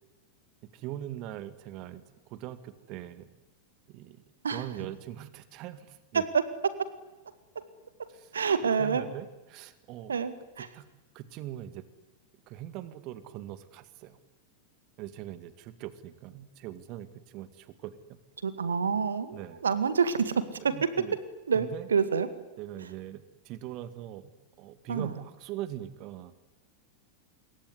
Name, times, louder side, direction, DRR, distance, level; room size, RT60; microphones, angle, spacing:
voice 1, 0.6-3.3 3.9-6.3 8.1-8.3 8.8-10.1 10.7-10.8 11.1-11.9 12.5-14.2 15.0-18.0 19.3-19.6 20.6-21.2 21.5-21.9 22.6-24.3 24.6-26.3, right 13 dB, 40° right, 13 dB, 2.0 m, -41 dB
voice 2, 8.0-9.1 10.1-10.7 18.4-20.7 21.5-22.3 24.9-25.2, right 6 dB, 70° right, 13 dB, 2.0 m, -28 dB
27.0 x 22.5 x 9.7 m, 1.1 s
figure-of-eight pair, 90°, 0 cm